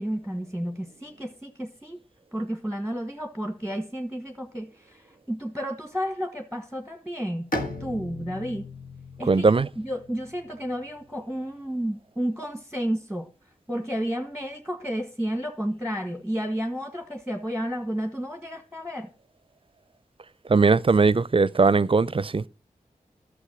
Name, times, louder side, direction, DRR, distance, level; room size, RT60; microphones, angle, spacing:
voice 1, 0.0-2.0 2.3-7.5 7.8-8.7 9.2-13.3 13.7-19.1, equal, 5° left, 1.4 m, -31 dB
Bowed string instrument, 7.5-11.1, left 1 dB, 85° left, 1.6 m, -37 dB
voice 2, 9.3-9.7 20.5-22.5, right 4 dB, 40° right, 0.5 m, -19 dB
12.0 x 6.4 x 6.2 m
cardioid pair, 45°, 14 cm